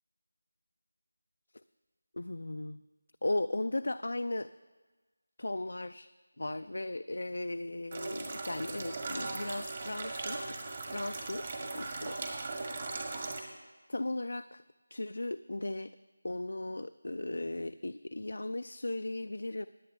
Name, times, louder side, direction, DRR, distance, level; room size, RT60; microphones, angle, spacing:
voice 1, 2.2-2.8 3.2-4.5 5.4-6.1 6.4-10.4 10.9-12.2 13.9-14.6 14.9-15.9 16.2-19.7, left 2 dB, 70° left, 10 dB, 0.3 m, -36 dB
sound 1, 7.9-13.4, right 3 dB, 40° right, 1.5 m, -38 dB
20.0 x 8.3 x 3.2 m, 1.3 s
figure-of-eight pair, 165°, 0 cm